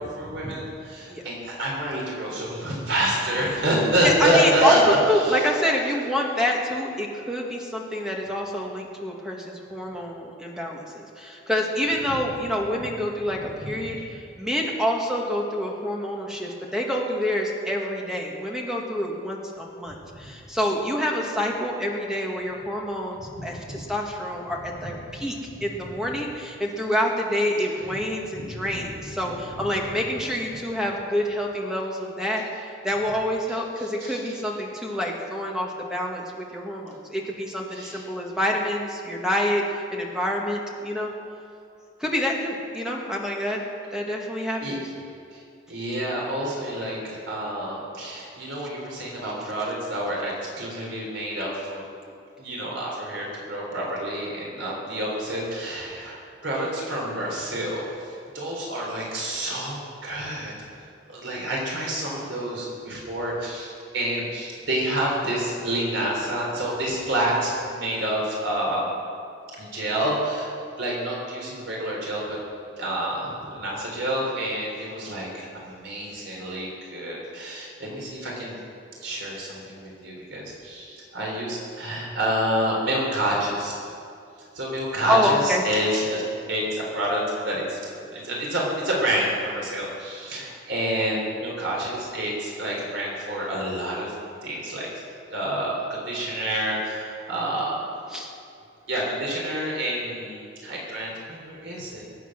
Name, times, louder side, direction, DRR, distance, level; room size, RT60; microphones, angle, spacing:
voice 1, 0.0-4.8 5.2-5.5 13.6-14.0 19.9-20.0 23.4-23.8 24.8-24.9 27.9-28.0 28.5-29.1 29.5-29.6 34.1-34.2 37.7-38.0 44.6-44.8 45.3-45.4 45.7-51.8 52.4-56.2 56.4-60.5 61.1-68.9 69.6-72.4 72.8-78.6 79.0-83.8 84.5-86.2 86.5-94.1 94.4-94.9 95.3-97.8 98.9-102.0, right 1 dB, 75° right, -3 dB, 3.6 m, -28 dB
voice 2, 4.0-39.6 39.9-41.1 42.0-43.6 43.9-44.8 85.1-85.6 98.1-98.3, left 1 dB, 5° right, -1 dB, 1.9 m, -27 dB
22.0 x 9.0 x 6.1 m, 2.5 s
head